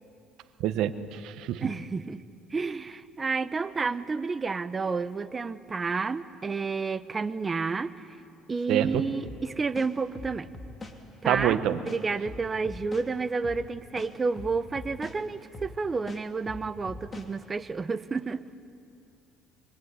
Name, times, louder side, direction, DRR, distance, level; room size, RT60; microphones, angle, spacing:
voice 1, 0.6-1.7 8.7-9.0 11.2-11.8, right 12 dB, 70° right, 11 dB, 1.3 m, -26 dB
voice 2, 1.6-2.2 2.5-7.9 8.5-10.5 11.2-18.5, right 4 dB, 25° right, 13 dB, 0.9 m, -30 dB
sound 1, 9.2-9.4 9.7-11.0 11.3-11.5 11.9-13.1 13.4-13.6 14.0-15.2 15.5-15.7 16.1-17.3, left 2 dB, 25° left, 2.9 m, -41 dB
23.5 x 23.5 x 9.7 m, 2.6 s
cardioid pair, 105°, 0 cm